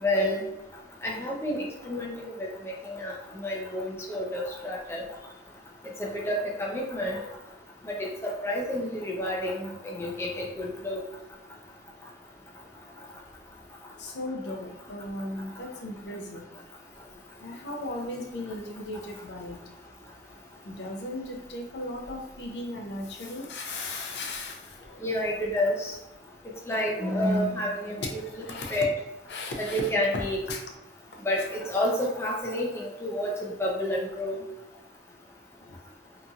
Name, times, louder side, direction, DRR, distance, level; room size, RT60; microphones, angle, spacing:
voice 1, 0.0-0.4 1.0-3.1 3.4-5.0 6.0-7.2 7.8-11.0 25.0-25.9 26.7-28.4 28.7-28.9 29.6-30.4 31.2-33.3 33.6-34.4, left 1 dB, 15° left, -2 dB, 0.5 m, -29 dB
voice 2, 14.0-16.5 17.4-19.6 20.7-25.1 28.0-28.8 29.3-30.6, left 2 dB, 80° left, 2 dB, 0.6 m, -36 dB
2.9 x 2.6 x 2.4 m, 0.95 s
head